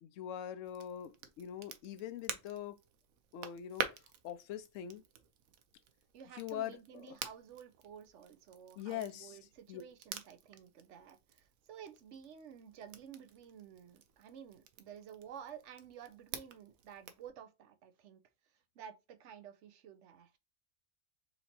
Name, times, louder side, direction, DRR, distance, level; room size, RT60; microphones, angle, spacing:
voice 1, 0.0-2.8 3.3-3.9 4.2-5.0 6.4-6.8 7.0-7.1 8.8-9.4 9.7-9.8, left 10 dB, 70° left, 0.9 m, -42 dB
Crackle, 0.6-17.3, right 8 dB, 90° right, 1.1 m, -48 dB
voice 2, 6.1-20.4, right 8 dB, 65° right, 0.9 m, -52 dB
4.4 x 2.8 x 4.1 m
omnidirectional pair, 1.4 m